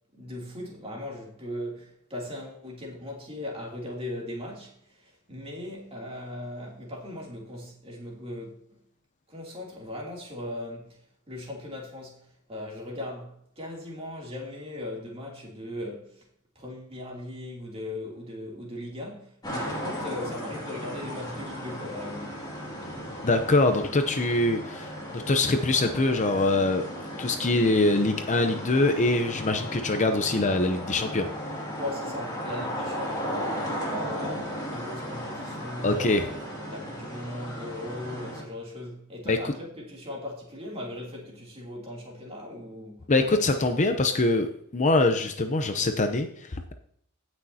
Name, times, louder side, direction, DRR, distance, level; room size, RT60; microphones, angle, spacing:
voice 1, 0.1-8.8 9.3-11.0 11.3-16.3 16.5-22.4 31.8-36.3 36.7-43.4, left 1 dB, 25° right, 2.9 m, -38 dB
sound 1, 19.4-38.4, equal, 20° left, 2.4 m, -36 dB
voice 2, 23.2-26.8 27.2-31.3 35.8-36.2 39.3-39.5 43.1-46.7, left 2 dB, 35° left, 0.7 m, -24 dB
16.5 x 6.3 x 2.8 m
head